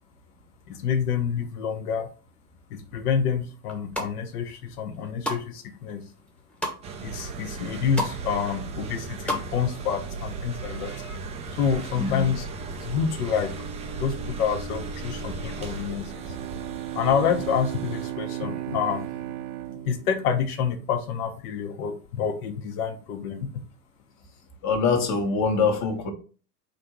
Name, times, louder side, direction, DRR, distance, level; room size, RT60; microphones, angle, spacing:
voice 1, 0.7-2.1 2.7-6.0 7.0-11.2 11.5-12.5 12.8-13.5 13.9-16.4 16.9-19.2 19.9-23.5, left 7 dB, 65° left, 1.1 m, -28 dB
sound 1, 3.6-4.1 4.7-5.4 5.8-6.8 7.3-7.4 7.6-8.2 8.5-9.4 9.7-9.8, equal, ahead, 1.0 m, -31 dB
sound 2, 6.8-18.1, right 4 dB, 15° right, 0.3 m, -36 dB
voice 2, 12.0-12.3 24.6-26.1, left 4 dB, 35° left, 1.2 m, -24 dB
Bowed string instrument, 16.0-21.2, right 14 dB, 75° right, 0.6 m, -35 dB
4.3 x 2.7 x 4.5 m
hypercardioid pair, 100°, 48 cm